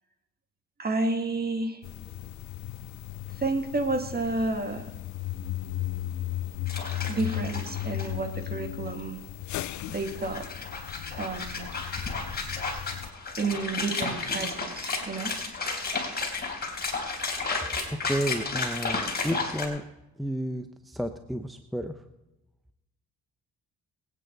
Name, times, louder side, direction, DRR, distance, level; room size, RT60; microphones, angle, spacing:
voice 1, 0.8-1.8 3.4-4.9 7.1-9.2 9.9-10.5 11.1-11.7 13.4-15.3, right 3 dB, 30° right, 5 dB, 2.1 m, -30 dB
sound 1, 1.8-13.1, left 15 dB, 70° left, 0.6 m, -36 dB
sound 2, 6.7-8.1 8.4-8.5 9.6-19.7, left 4 dB, 30° left, 3.7 m, -33 dB
voice 2, 17.9-19.8 20.2-22.0, equal, ahead, 7 dB, 0.8 m, -32 dB
23.5 x 9.3 x 4.0 m, 0.96 s
cardioid pair, 90°, 30 cm